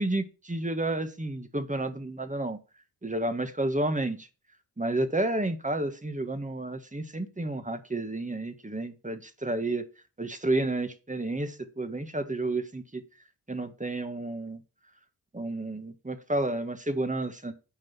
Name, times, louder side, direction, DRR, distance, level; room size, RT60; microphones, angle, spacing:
voice 1, 0.0-2.6 3.0-4.3 4.8-9.8 10.2-13.0 13.5-14.6 15.3-17.5, right 2 dB, 15° right, 9 dB, 1.7 m, -31 dB
9.0 x 5.4 x 5.8 m, 0.33 s
supercardioid pair, 40°, 47 cm